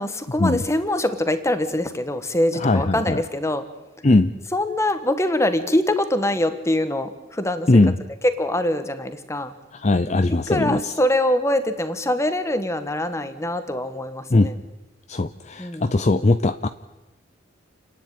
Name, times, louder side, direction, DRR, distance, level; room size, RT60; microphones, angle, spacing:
voice 1, 0.0-3.6 4.5-7.7 8.4-9.5 10.5-14.5 15.6-15.9, left 1 dB, 15° left, 10 dB, 1.5 m, -23 dB
voice 2, 2.5-3.2 4.0-4.3 7.7-7.9 9.8-10.8 14.3-14.5 15.1-16.7, left 2 dB, 35° left, 10 dB, 0.6 m, -19 dB
29.5 x 10.5 x 9.2 m, 1.1 s
head